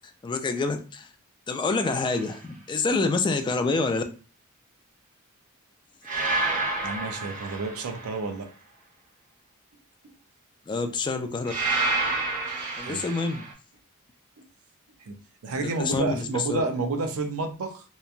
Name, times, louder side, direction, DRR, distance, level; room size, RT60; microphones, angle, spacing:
voice 1, 0.2-1.1 1.5-4.0 10.7-11.5 12.8-13.5 15.5-16.6, left 3 dB, 20° left, 7 dB, 0.3 m, -27 dB
sound 1, 1.9-2.2 6.0-8.2 11.5-13.5, right 3 dB, 40° right, 0.8 m, -29 dB
voice 2, 6.8-8.5 12.8-13.0 15.0-15.2 15.4-17.8, right 3 dB, 75° right, 4 dB, 0.5 m, -30 dB
2.9 x 2.2 x 2.4 m, 0.35 s
head